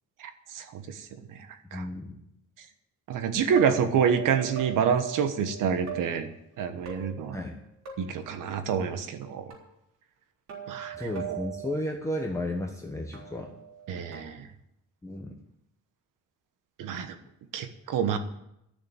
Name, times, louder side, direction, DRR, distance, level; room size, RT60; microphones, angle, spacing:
voice 1, 1.7-2.1 7.3-7.6 10.9-13.5 15.0-15.3, left 1 dB, 10° left, 0 dB, 1.1 m, -33 dB
voice 2, 3.1-6.3 6.6-7.4 8.0-9.5 10.7-11.4 13.9-14.5 16.8-17.2 17.5-18.2, right 7 dB, 90° right, 9 dB, 1.3 m, -27 dB
sound 1, 3.5-6.0 6.8-7.6 7.9-8.3 9.5-9.6 10.5-11.8 13.1-14.2, right 9 dB, 60° right, 3.8 m, -40 dB
12.0 x 6.8 x 9.1 m, 0.81 s
cardioid pair, 140°, 31 cm